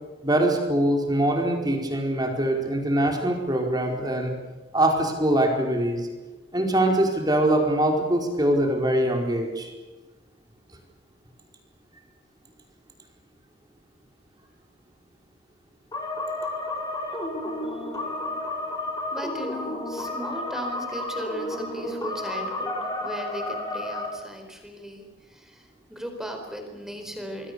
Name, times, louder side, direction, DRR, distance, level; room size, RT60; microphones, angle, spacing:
voice 1, 0.2-4.3 4.7-6.1 6.5-9.7, right 1 dB, 20° right, 2 dB, 4.5 m, -23 dB
sound 1, 15.9-24.1, left 1 dB, 20° left, 6.1 m, -31 dB
voice 2, 19.1-27.5, equal, ahead, 4 dB, 4.4 m, -37 dB
26.5 x 22.0 x 7.0 m, 1.2 s
head